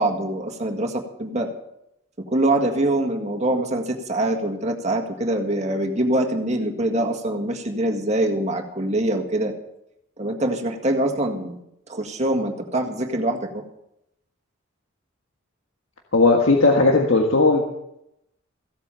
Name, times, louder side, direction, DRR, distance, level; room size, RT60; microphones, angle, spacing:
voice 1, 0.0-1.5 2.3-9.5 10.2-11.6 11.9-13.6, right 1 dB, 35° right, 2 dB, 1.8 m, -24 dB
voice 2, 16.1-17.6, left 3 dB, 75° left, 1 dB, 1.6 m, -16 dB
16.0 x 8.4 x 7.0 m, 0.81 s
head